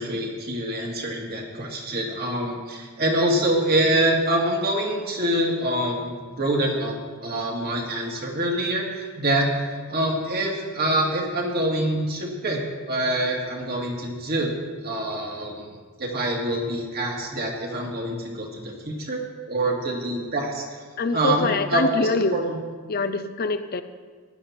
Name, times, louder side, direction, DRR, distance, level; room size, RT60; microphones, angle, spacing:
voice 1, 0.0-7.0 7.2-12.6 12.9-14.5 14.8-19.2 19.5-20.6 21.1-22.6, right 1 dB, 50° right, -1 dB, 2.5 m, -25 dB
voice 2, 21.0-22.4 22.9-23.8, left 3 dB, 45° left, 10 dB, 0.6 m, -24 dB
16.0 x 11.5 x 4.4 m, 1.5 s
head